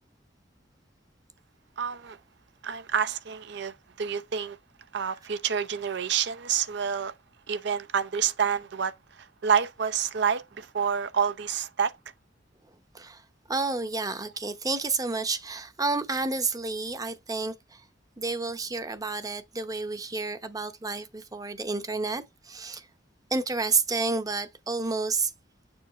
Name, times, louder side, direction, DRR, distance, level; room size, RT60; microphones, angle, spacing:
voice 1, 1.8-2.2 2.6-4.6 4.9-7.1 7.5-8.9 9.4-11.9, right 7 dB, 65° right, 0.6 m, -28 dB
voice 2, 13.5-17.8 18.2-22.9 23.3-25.3, right 3 dB, 20° right, 0.7 m, -30 dB
7.1 x 4.8 x 3.1 m
head